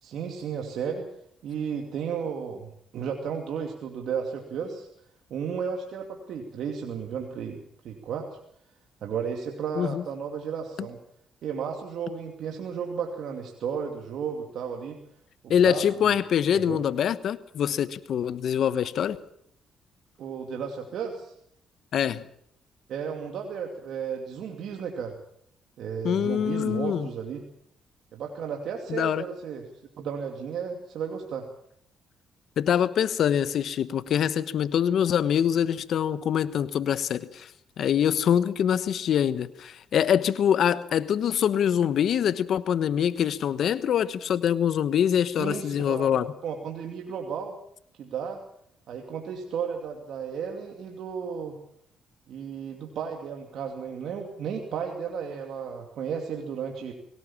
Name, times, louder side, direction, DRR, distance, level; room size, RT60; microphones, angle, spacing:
voice 1, 0.0-1.1 1.4-4.9 5.3-7.6 7.8-8.4 9.0-11.0 11.4-15.0 15.4-15.8 16.5-16.8 20.2-21.3 22.9-25.2 25.8-27.4 28.1-29.6 30.0-31.5 45.4-47.5 48.0-48.4 48.9-51.6 52.3-56.9, right 7 dB, 70° right, 2 dB, 2.6 m, -33 dB
voice 2, 15.5-19.2 21.9-22.2 26.0-27.1 28.9-29.2 32.6-37.5 37.8-46.3, left 9 dB, 65° left, 14 dB, 1.1 m, -24 dB
22.0 x 17.5 x 7.3 m, 0.70 s
cardioid pair, 90°, 0 cm